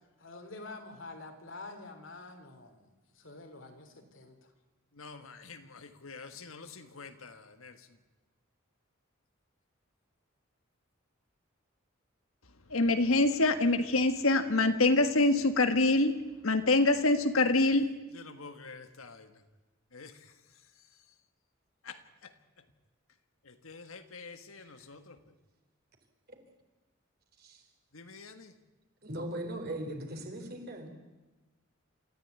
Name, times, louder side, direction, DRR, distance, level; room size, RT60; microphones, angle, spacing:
voice 1, 0.2-4.5, left 2 dB, 65° left, 3.5 m, -47 dB
voice 2, 5.0-7.7 12.7-16.1 16.4-17.8 18.1-19.3 19.9-20.1 21.9-22.0 23.6-25.2 27.9-28.5, left 2 dB, 80° left, 1.6 m, -28 dB
voice 3, 29.0-30.9, right 1 dB, 45° right, 4.0 m, -39 dB
27.5 x 14.5 x 9.5 m
head